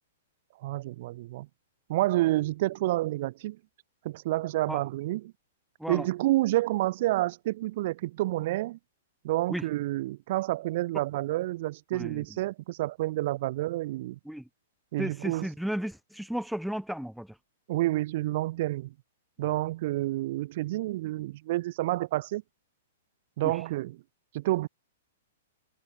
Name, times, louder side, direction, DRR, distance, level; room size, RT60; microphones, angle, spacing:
voice 1, 0.6-1.5 1.9-3.6 4.0-5.3 5.9-8.8 9.2-14.2 14.9-15.5 17.7-18.9 19.4-22.4 23.4-24.0 24.3-24.7, right 17 dB, 55° right, 0.9 m, -29 dB
voice 2, 11.9-12.2 14.3-14.4 15.0-17.3 23.4-23.5, equal, ahead, 0.6 m, -34 dB
hypercardioid pair, 130°, 0 cm